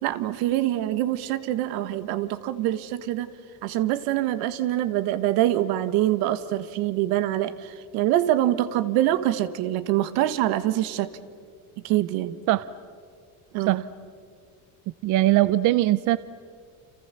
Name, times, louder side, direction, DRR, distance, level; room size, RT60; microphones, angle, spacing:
voice 1, 0.0-3.3 3.6-11.1 11.8-12.4 13.5-13.8, right 13 dB, 80° right, 12 dB, 1.6 m, -25 dB
voice 2, 15.0-16.2, right 16 dB, 55° right, 16 dB, 0.7 m, -20 dB
30.0 x 28.5 x 7.0 m, 2.1 s
cardioid pair, 135°, 36 cm